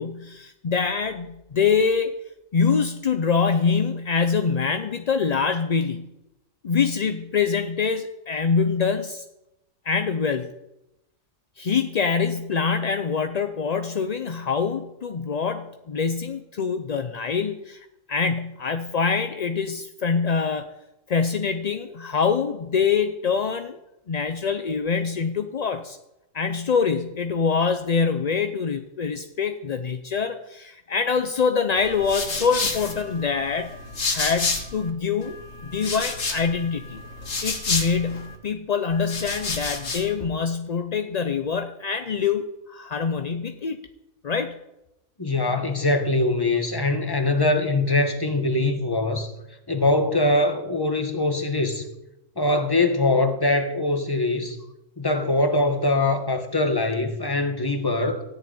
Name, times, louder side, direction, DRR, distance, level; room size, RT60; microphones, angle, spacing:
voice 1, 0.0-2.1 2.5-6.1 6.6-9.2 9.8-10.5 11.6-20.7 21.1-23.8 24.1-26.0 26.3-33.8 34.1-35.4 35.6-37.0 37.4-43.8 44.2-44.6, left 5 dB, 45° left, 0.5 m, -25 dB
sound 1, 31.8-34.9 35.2-38.4 38.9-40.1, left 3 dB, 65° left, 2.1 m, -30 dB
voice 2, 45.2-49.3 49.7-51.8 52.4-54.6 55.0-58.2, left 2 dB, 15° left, 1.3 m, -22 dB
14.0 x 6.8 x 9.5 m
omnidirectional pair, 1.4 m